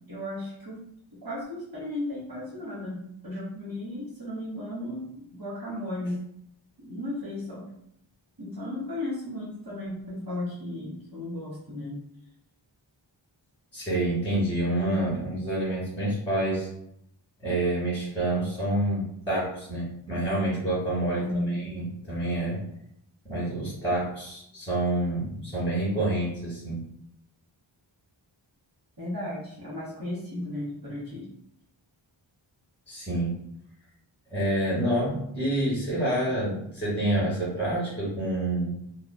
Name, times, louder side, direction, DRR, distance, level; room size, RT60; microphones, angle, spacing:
voice 1, 0.1-0.9 1.2-6.2 6.8-7.7 8.4-12.0 21.2-21.6 29.0-31.3, left 1 dB, 45° right, -9 dB, 1.1 m, -35 dB
voice 2, 13.7-16.7 17.4-22.6 23.2-26.8 32.9-33.4 34.3-38.8, right 1 dB, 10° left, -9 dB, 1.3 m, -28 dB
2.6 x 2.3 x 2.2 m, 0.75 s
wide cardioid pair, 45°, 47 cm